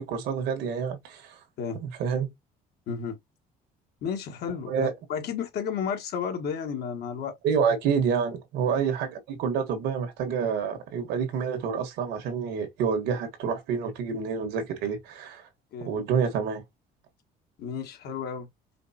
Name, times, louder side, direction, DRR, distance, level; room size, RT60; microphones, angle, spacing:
voice 1, 0.0-1.4 1.8-2.3 4.7-4.9 7.4-15.5 15.8-16.6, right 6 dB, 85° right, 1.5 m, -28 dB
voice 2, 2.9-3.2 4.0-7.4 15.7-15.9 17.6-18.5, left 6 dB, 70° left, 1.6 m, -32 dB
5.0 x 3.2 x 2.8 m
cardioid pair, 110°, 17 cm